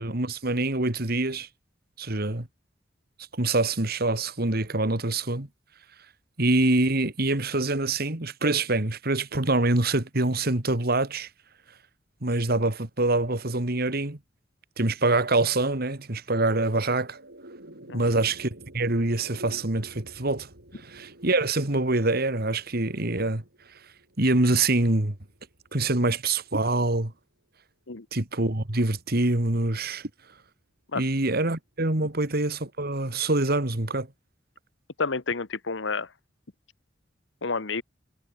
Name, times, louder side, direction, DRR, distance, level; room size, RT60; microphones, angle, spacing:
voice 1, 0.0-1.5 2.0-2.5 3.3-5.5 6.4-11.3 12.2-14.2 14.8-17.2 17.9-20.5 20.8-23.4 24.2-25.2 25.7-27.1 28.1-30.1 30.9-34.1, right 2 dB, 55° right, 2.4 m, -25 dB
sound 1, 16.4-26.9, right 1 dB, 70° right, 6.8 m, -50 dB
voice 2, 35.0-36.1 37.4-37.8, left 4 dB, 85° left, 1.3 m, -29 dB
head